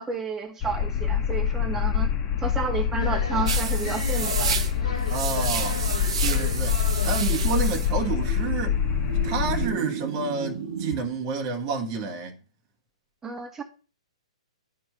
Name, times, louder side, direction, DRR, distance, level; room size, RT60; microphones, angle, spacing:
voice 1, 0.0-2.1 2.4-4.6 13.2-13.6, right 4 dB, 15° right, 2.1 m, -31 dB
sound 1, 0.6-9.7, left 8 dB, 30° left, 1.4 m, -26 dB
sound 2, 3.0-8.5, left 3 dB, 80° left, 3.0 m, -36 dB
sound 3, 3.5-11.0, right 6 dB, 55° right, 1.4 m, -32 dB
voice 2, 5.1-5.8 6.2-6.8 7.0-8.8 9.2-12.4, right 5 dB, 35° right, 1.7 m, -29 dB
12.0 x 4.6 x 3.5 m
figure-of-eight pair, 120°, 4 cm